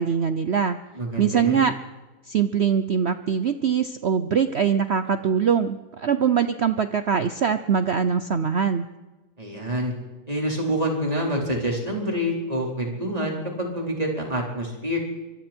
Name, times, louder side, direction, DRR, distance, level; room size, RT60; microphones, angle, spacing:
voice 1, 0.0-0.8 1.2-1.7 2.3-8.9, right 7 dB, 50° right, 10 dB, 0.8 m, -22 dB
voice 2, 0.9-1.6 9.4-9.9 10.3-15.0, equal, 20° right, -1 dB, 4.6 m, -27 dB
24.5 x 24.0 x 4.5 m, 1.1 s
omnidirectional pair, 1.7 m